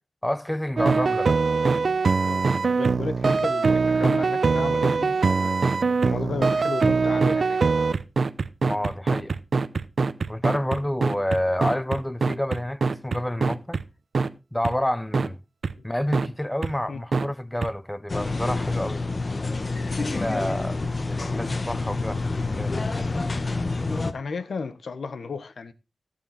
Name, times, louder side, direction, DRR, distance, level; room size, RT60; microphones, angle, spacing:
voice 1, 0.2-1.4 8.6-9.4 10.3-13.8 14.5-15.4 15.8-19.0 20.0-20.8 21.1-23.2, left 1 dB, 10° left, 0.5 m, -29 dB
sound 1, 0.8-13.8 14.1-14.3 14.6-14.7 15.1-15.3 15.6-15.7 16.1-16.3 16.6-16.7 17.1-17.3 17.6-17.7, right 4 dB, 65° right, 0.7 m, -22 dB
voice 2, 2.2-5.5 6.0-7.6 15.8-15.9 16.9-17.0 24.1-25.7, left 4 dB, 85° left, 1.1 m, -34 dB
sound 2, 18.1-24.1, left 3 dB, 45° left, 1.0 m, -28 dB
16.5 x 7.0 x 4.2 m
wide cardioid pair, 95°, 0 cm